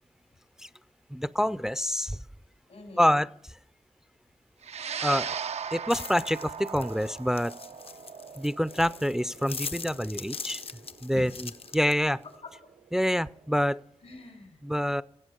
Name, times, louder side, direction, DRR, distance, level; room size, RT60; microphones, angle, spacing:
voice 1, 1.1-2.2 3.0-3.3 5.0-5.4 5.7-7.5 8.4-10.6 11.0-11.3 11.7-12.2 12.9-13.8 14.6-15.0, equal, 5° right, 17 dB, 0.4 m, -26 dB
voice 2, 2.7-3.2 11.1-11.4 12.2-12.5 14.0-14.6, left 2 dB, 90° left, 4 dB, 4.1 m, -45 dB
sound 1, 4.6-13.2, right 7 dB, 75° right, 0.4 m, -39 dB
sound 2, 5.9-12.3, left 5 dB, 60° left, 0.6 m, -42 dB
17.5 x 7.7 x 5.3 m, 0.72 s
cardioid pair, 55°, 11 cm